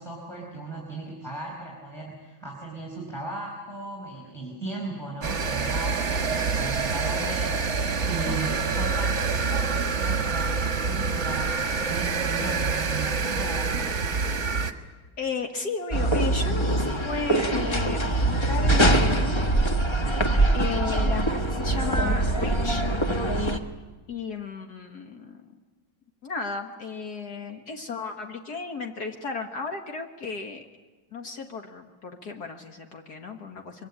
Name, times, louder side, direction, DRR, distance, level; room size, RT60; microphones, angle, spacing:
voice 1, 0.0-13.9, right 2 dB, ahead, -1 dB, 5.2 m, -37 dB
sound 1, 5.2-14.7, right 5 dB, 40° right, 1.5 m, -26 dB
voice 2, 8.3-8.6 15.2-19.5 20.5-22.9 23.4-23.5 24.1-25.5 26.2-30.7 31.1-33.9, left 4 dB, 60° left, 4 dB, 1.9 m, -34 dB
sound 2, 15.9-23.6, right 1 dB, 20° left, 1.1 m, -23 dB
24.0 x 23.0 x 8.7 m, 1.3 s
omnidirectional pair, 2.0 m